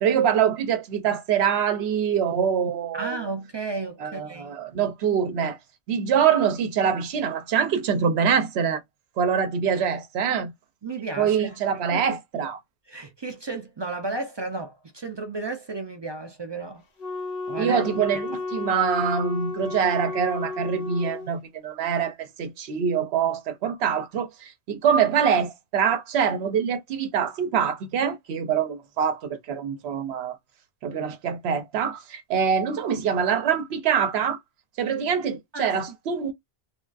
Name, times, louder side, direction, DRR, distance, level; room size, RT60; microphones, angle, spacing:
voice 1, 0.0-3.3 4.0-5.6 5.9-8.8 9.2-10.5 11.2-12.6 17.6-30.4 30.8-34.4 34.8-36.3, right 7 dB, 85° right, 0.8 m, -24 dB
voice 2, 2.9-4.6 10.8-11.6 11.9-12.4 12.9-16.8 17.5-17.8 18.1-18.2 35.5-35.7, right 3 dB, 45° right, 0.3 m, -33 dB
Wind instrument woodwind instrument, 17.0-21.3, left 3 dB, 65° left, 1.0 m, -33 dB
3.3 x 2.3 x 2.4 m
omnidirectional pair, 1.0 m